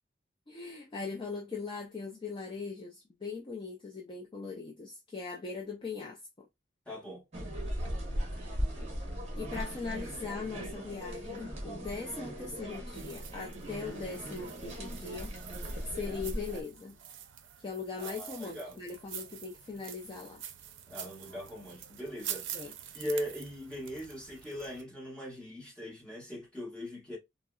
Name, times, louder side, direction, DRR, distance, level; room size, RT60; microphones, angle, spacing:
voice 1, 0.5-6.5 9.4-15.3 15.9-17.0 17.6-20.4 22.5-22.7, left 4 dB, 25° left, 0.4 m, -40 dB
voice 2, 6.9-7.3 18.0-18.8 20.9-22.7 22.9-27.2, equal, 5° left, 1.2 m, -40 dB
sound 1, 7.3-16.6, equal, 35° right, 0.9 m, -38 dB
sound 2, 12.9-24.8, right 10 dB, 70° right, 0.5 m, -46 dB
3.8 x 2.0 x 2.3 m
head